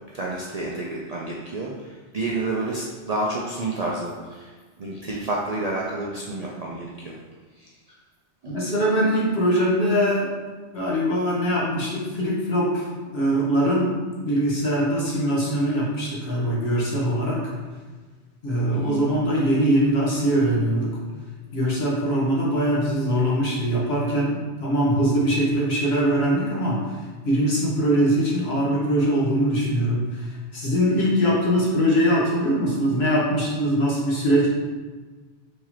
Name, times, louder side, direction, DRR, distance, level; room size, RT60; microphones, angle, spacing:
voice 1, 0.1-4.5 4.8-7.2 7.6-7.7 8.4-8.5 18.7-19.1, right 2 dB, 55° right, -3 dB, 0.4 m, -29 dB
voice 2, 8.5-10.3 10.7-12.9 13.1-17.4 18.4-20.9 21.5-26.8 27.2-34.5, equal, 65° left, -5 dB, 1.4 m, -22 dB
4.8 x 3.7 x 2.8 m, 1.4 s
omnidirectional pair, 1.2 m